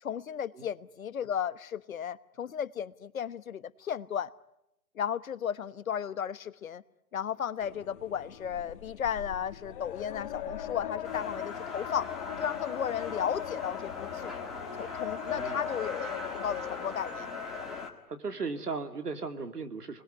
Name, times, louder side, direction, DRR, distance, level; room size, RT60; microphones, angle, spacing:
voice 1, 0.0-4.3 4.9-6.8 7.1-12.1 12.4-14.3 14.8-17.3 17.5-17.7, left 8 dB, 65° left, 1.2 m, -34 dB
sound 1, 7.6-17.9, left 10 dB, 35° left, 1.8 m, -39 dB
sound 2, 11.0-17.9, left 2 dB, ahead, 1.8 m, -41 dB
voice 2, 15.2-15.7 18.1-20.0, right 4 dB, 90° right, 3.0 m, -37 dB
28.5 x 21.0 x 9.6 m
hypercardioid pair, 160°, 45 cm